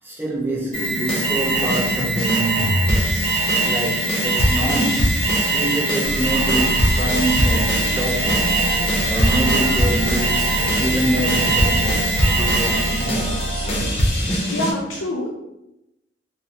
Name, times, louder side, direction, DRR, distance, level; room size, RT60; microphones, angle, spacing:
voice 1, 0.0-2.9 3.6-8.6 9.1-10.5 10.8-13.4 14.2-14.4, right 1 dB, 10° right, -4 dB, 0.6 m, -26 dB
sound 1, 0.7-14.7, equal, 30° left, 0.7 m, -24 dB
Alarm, 0.7-13.1, right 2 dB, 30° right, 1.0 m, -23 dB
sound 2, 6.0-14.0, right 1 dB, 55° right, 0.4 m, -27 dB
voice 2, 14.4-15.3, left 1 dB, 70° left, -3 dB, 0.5 m, -26 dB
3.8 x 2.0 x 2.8 m, 0.89 s
head